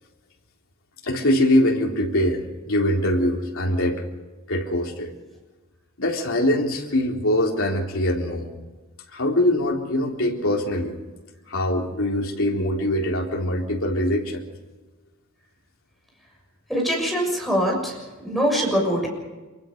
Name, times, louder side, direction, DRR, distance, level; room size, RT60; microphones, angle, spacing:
voice 1, 1.0-4.0 4.5-5.1 6.0-8.5 9.1-10.9 11.5-14.4, left 1 dB, 65° left, -1 dB, 3.8 m, -23 dB
voice 2, 16.7-17.9 18.2-19.1, equal, ahead, -1 dB, 6.8 m, -23 dB
25.5 x 23.5 x 5.3 m, 1.2 s
head